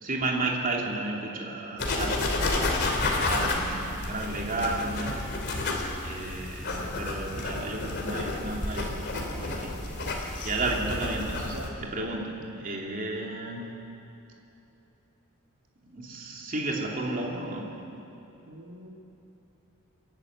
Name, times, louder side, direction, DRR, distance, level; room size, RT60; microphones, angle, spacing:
voice 1, 0.0-2.3 3.1-5.2 6.0-9.7 10.4-11.5 11.8-13.6 15.9-17.7, right 2 dB, 40° right, -1 dB, 2.9 m, -32 dB
sound 1, 1.8-11.7, left 2 dB, 50° left, 3.1 m, -30 dB
voice 2, 18.5-18.9, right 1 dB, 90° right, 0 dB, 2.0 m, -43 dB
29.5 x 11.5 x 8.1 m, 2.9 s
head